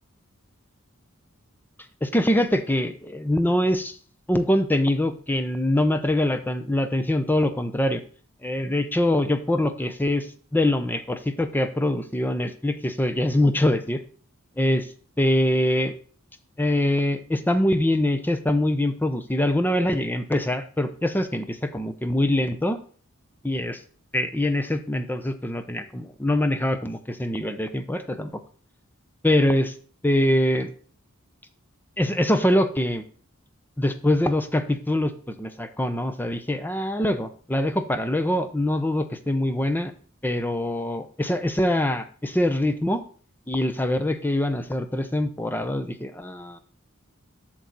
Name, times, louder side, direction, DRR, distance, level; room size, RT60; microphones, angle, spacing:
voice 1, 2.0-3.9 4.3-8.0 8.4-10.3 10.5-14.0 14.6-14.9 15.2-15.9 16.6-22.8 23.4-23.8 24.1-28.3 29.2-29.7 30.0-30.7 32.0-33.0 33.8-39.9 40.2-43.0 43.5-46.6, left 1 dB, 10° left, 9 dB, 0.7 m, -24 dB
8.2 x 6.3 x 4.1 m, 0.43 s
head